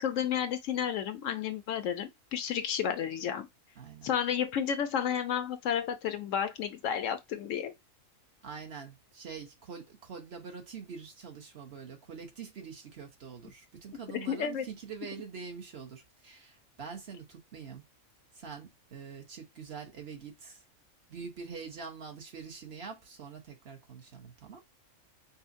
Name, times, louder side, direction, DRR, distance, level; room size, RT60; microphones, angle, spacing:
voice 1, 0.0-3.5 4.0-7.7 14.1-14.7, left 8 dB, 70° left, 0.9 m, -31 dB
voice 2, 3.8-4.1 8.4-17.8 18.3-20.6 21.1-24.6, right 6 dB, 55° right, 1.1 m, -45 dB
5.5 x 2.0 x 2.5 m
omnidirectional pair, 1.4 m